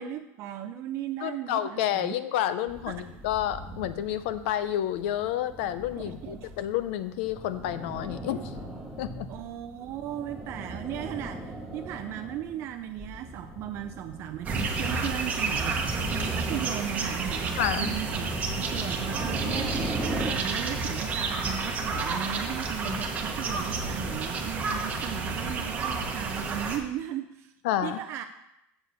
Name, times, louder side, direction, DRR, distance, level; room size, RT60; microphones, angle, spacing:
voice 1, 0.0-2.2 2.9-3.0 6.0-6.5 9.3-15.8 16.3-18.3 18.5-27.5 27.8-28.2, right 11 dB, 45° right, 6 dB, 0.4 m, -36 dB
voice 2, 1.2-8.5 9.0-9.3 17.6-17.9 22.8-23.0 27.6-28.0, left 11 dB, 85° left, 13 dB, 0.6 m, -30 dB
sound 1, 2.7-20.3, right 1 dB, 5° left, 2.0 m, -40 dB
sound 2, 14.4-26.8, right 4 dB, 25° right, 1.1 m, -30 dB
7.6 x 4.8 x 6.8 m, 0.84 s
cardioid pair, 155°, 6 cm